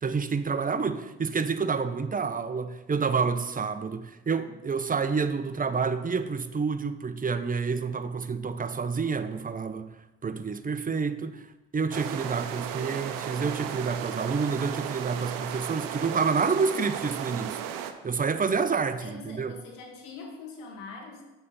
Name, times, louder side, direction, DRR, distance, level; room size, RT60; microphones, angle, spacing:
voice 1, 0.0-9.9 10.2-19.5, right 5 dB, 25° right, 10 dB, 0.6 m, -29 dB
sound 1, 11.9-17.9, right 9 dB, 80° right, 0.6 m, -35 dB
voice 2, 19.0-21.2, left 4 dB, 85° left, 2 dB, 1.0 m, -43 dB
8.0 x 5.4 x 4.1 m, 1.1 s
hypercardioid pair, 50°, 33 cm